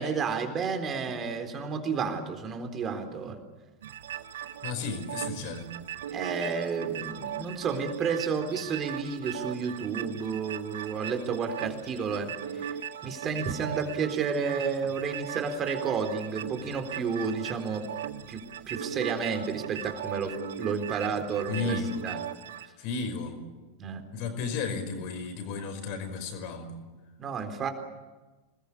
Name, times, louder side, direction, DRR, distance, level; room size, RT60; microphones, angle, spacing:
voice 1, 0.0-3.4 6.1-12.3 12.6-12.7 13.0-17.9 18.3-21.8 22.0-22.2 23.8-24.0 27.2-27.7, right 5 dB, 25° right, 7 dB, 4.0 m, -31 dB
sound 1, 3.8-22.7, right 10 dB, 60° right, 1.3 m, -39 dB
voice 2, 4.6-5.7 21.5-22.0 22.8-23.4 24.1-26.8, left 4 dB, 45° left, 8 dB, 5.3 m, -33 dB
28.0 x 20.5 x 8.5 m, 1.2 s
figure-of-eight pair, 90°, 0 cm